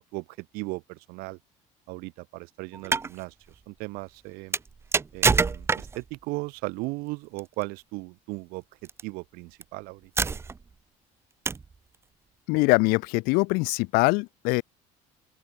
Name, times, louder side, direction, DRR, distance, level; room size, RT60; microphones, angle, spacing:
voice 1, 0.0-1.4 1.9-4.6 5.1-10.1, right 25 dB, 80° right, 5.0 m, -37 dB
sound 1, 2.7-3.1 4.5-6.1 7.4-7.6 8.8-9.0 9.6-9.7 10.2-10.7 11.5-11.7, right 4 dB, 15° right, 1.4 m, -26 dB
voice 2, 12.5-14.6, left 27 dB, 80° left, 1.2 m, -23 dB
open air
cardioid pair, 155°, 15 cm